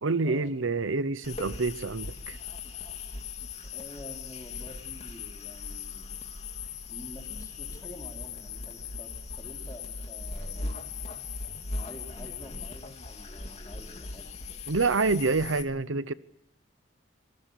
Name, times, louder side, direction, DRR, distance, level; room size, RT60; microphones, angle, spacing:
voice 1, 0.0-2.4 14.7-16.1, right 3 dB, 80° right, 0.9 m, -27 dB
sound 1, 1.2-15.6, left 4 dB, 30° left, 2.6 m, -39 dB
voice 2, 3.7-6.1 6.9-10.8 11.7-14.3, left 1 dB, 15° left, 4.3 m, -48 dB
26.0 x 19.5 x 8.3 m
head